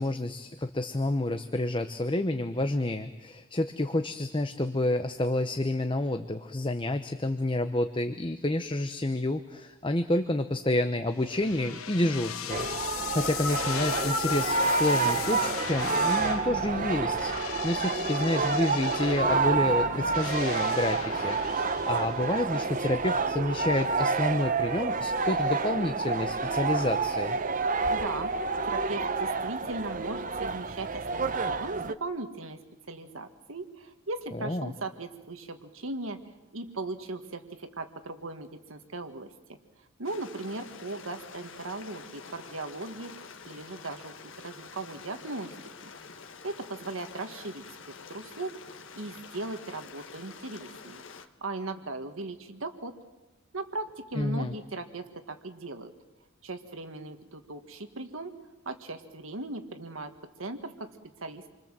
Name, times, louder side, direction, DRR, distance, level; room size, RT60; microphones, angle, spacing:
voice 1, 0.0-27.4 34.3-34.7 54.2-54.5, left 1 dB, 25° left, 8 dB, 0.9 m, -29 dB
sound 1, 11.2-22.5, left 7 dB, 90° left, 1.1 m, -37 dB
sound 2, 12.5-31.9, right 4 dB, 40° right, 0.9 m, -29 dB
voice 2, 27.9-28.3 28.6-32.6 32.9-36.2 36.5-39.6 40.0-45.6 45.8-45.9 46.4-48.5 48.9-51.0 51.4-52.9 53.5-55.9 56.4-58.3 58.7-60.9 61.2-61.4, right 2 dB, 75° right, 8 dB, 1.8 m, -38 dB
Stream, 40.0-51.3, left 5 dB, 65° left, 1.6 m, -47 dB
28.0 x 24.5 x 7.6 m, 1.1 s
head